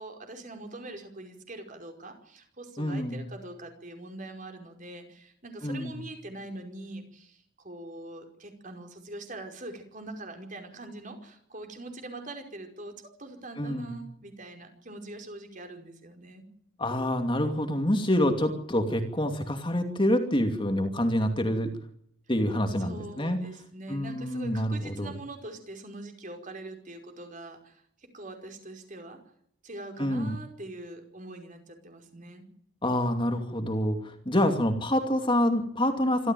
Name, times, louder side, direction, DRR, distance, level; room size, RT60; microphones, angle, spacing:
voice 1, 0.0-12.9 13.2-16.5 22.8-27.8 28.1-29.2 29.6-32.5, right 2 dB, 40° right, 4 dB, 5.0 m, -43 dB
voice 2, 2.8-3.2 5.6-6.0 13.6-14.0 16.8-21.7 22.3-23.4 23.9-25.1 30.0-30.4 32.8-36.3, left 1 dB, 25° left, 5 dB, 2.6 m, -27 dB
26.5 x 14.0 x 9.3 m, 0.68 s
head